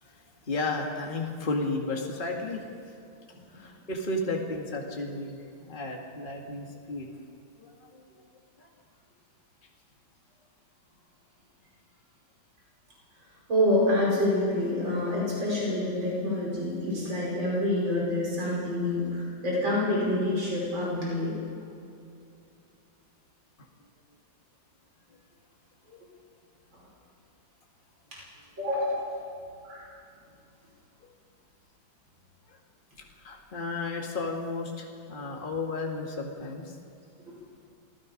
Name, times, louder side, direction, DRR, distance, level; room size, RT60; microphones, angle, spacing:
voice 1, 0.0-2.9 3.5-7.1 7.6-8.0 8.6-8.7 25.9-26.0 28.4-28.5 31.0-31.1 32.5-32.6 33.2-36.8, left 2 dB, 25° left, 0 dB, 2.2 m, -34 dB
voice 2, 13.5-21.3 28.1-28.2 28.6-29.2 29.6-29.9, left 1 dB, 80° right, -5 dB, 6.4 m, -27 dB
28.0 x 18.0 x 5.3 m, 2.6 s
omnidirectional pair, 2.1 m